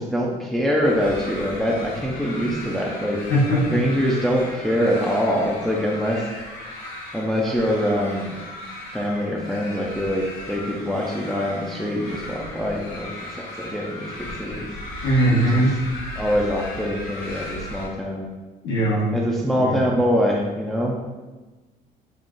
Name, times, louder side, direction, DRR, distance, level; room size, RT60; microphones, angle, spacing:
voice 1, 0.0-3.2 3.7-6.3 7.1-8.3 8.9-14.7 15.5-15.6 16.1-18.3 19.1-21.0, equal, ahead, -2 dB, 0.4 m, -24 dB
sound 1, 0.8-17.9, left 1 dB, 65° left, 1.3 m, -36 dB
voice 2, 3.3-3.8 15.0-15.8 18.6-19.1 19.5-19.8, right 1 dB, 90° left, -6 dB, 1.4 m, -20 dB
3.7 x 2.4 x 3.7 m, 1.2 s
cardioid pair, 110°, 17 cm